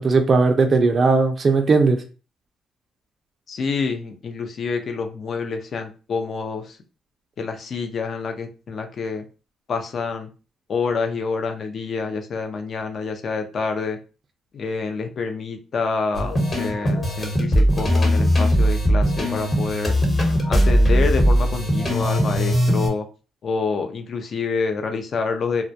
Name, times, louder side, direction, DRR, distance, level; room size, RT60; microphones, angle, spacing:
voice 1, 0.0-2.0, right 4 dB, 45° right, 5 dB, 0.4 m, -17 dB
voice 2, 3.5-6.8 7.4-9.2 9.7-10.3 10.7-14.0 14.5-19.9 20.5-23.1 23.4-25.6, left 4 dB, 55° left, 6 dB, 0.5 m, -27 dB
sound 1, 16.1-22.9, equal, 35° left, 0.9 m, -19 dB
2.2 x 2.1 x 2.7 m, 0.35 s
cardioid pair, 90°, 0 cm